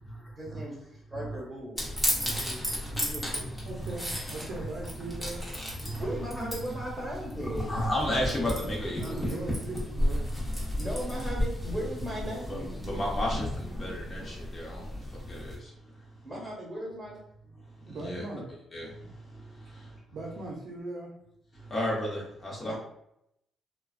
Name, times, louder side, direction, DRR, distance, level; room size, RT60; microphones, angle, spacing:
voice 1, 0.4-0.7 1.1-3.5 6.0-7.8 10.8-12.8 16.2-17.2 17.4-17.6 22.6-22.8, equal, 15° right, -4 dB, 1.2 m, -38 dB
sound 1, 1.8-15.6, equal, 10° left, 0.8 m, -33 dB
voice 2, 3.6-5.4 9.0-10.2 17.9-18.5 20.1-21.1, right 2 dB, 60° right, -3 dB, 0.5 m, -39 dB
voice 3, 7.7-9.3 12.5-15.0 15.3-15.5 17.9-18.2 18.7-19.9 21.6-22.8, left 1 dB, 35° left, -4 dB, 1.0 m, -33 dB
2.3 x 2.2 x 2.4 m, 0.78 s
cardioid pair, 90°, 0 cm